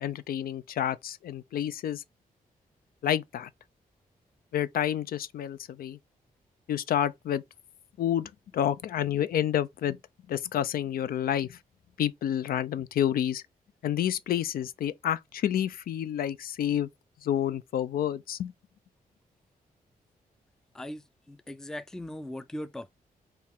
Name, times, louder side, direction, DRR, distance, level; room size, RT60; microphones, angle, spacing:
voice 1, 0.0-2.0 3.0-3.5 4.5-6.0 6.7-7.4 8.0-10.0 10.3-11.6 12.0-13.4 13.8-16.9 17.2-18.5, left 10 dB, 75° left, 0.4 m, -29 dB
voice 2, 20.7-22.9, left 1 dB, 5° left, 0.3 m, -39 dB
4.5 x 2.4 x 3.4 m
wide cardioid pair, 125°, 15 cm